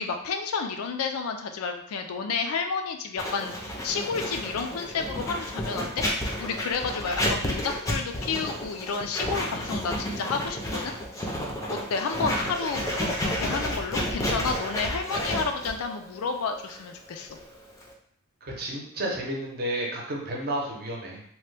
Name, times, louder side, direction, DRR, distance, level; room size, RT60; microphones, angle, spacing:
voice 1, 0.0-3.5 3.8-6.0 6.4-10.9 11.7-17.4, left 5 dB, 75° left, 5 dB, 0.4 m, -31 dB
Writing, 3.2-17.9, equal, 15° left, 0.5 m, -31 dB
voice 2, 18.4-21.2, right 1 dB, 45° right, -2 dB, 0.7 m, -31 dB
2.9 x 2.2 x 3.2 m, 0.66 s
head